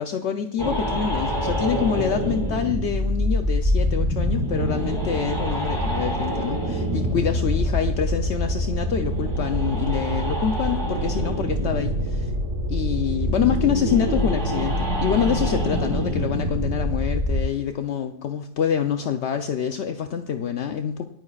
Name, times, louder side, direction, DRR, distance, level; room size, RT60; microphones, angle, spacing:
voice 1, 0.0-12.3 12.7-21.1, left 8 dB, 70° left, 6 dB, 1.0 m, -26 dB
sound 1, 0.6-17.4, left 1 dB, 20° right, 1.9 m, -26 dB
sound 2, 4.3-16.9, right 3 dB, 75° right, 1.7 m, -30 dB
25.5 x 9.3 x 2.4 m, 0.71 s
omnidirectional pair, 1.3 m